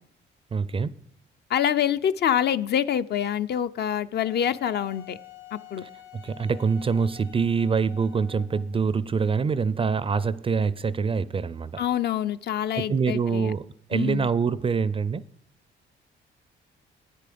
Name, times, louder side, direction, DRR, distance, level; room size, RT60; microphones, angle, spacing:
voice 1, 0.5-0.9 6.2-11.8 12.8-15.3, right 5 dB, 30° right, 0.4 m, -25 dB
voice 2, 1.5-5.2 5.5-5.8 11.8-13.5 13.9-14.3, left 10 dB, 55° left, 0.5 m, -26 dB
Wind instrument woodwind instrument, 4.2-8.8, left 12 dB, 80° left, 1.3 m, -48 dB
9.2 x 8.4 x 5.1 m
cardioid pair, 90°, 20 cm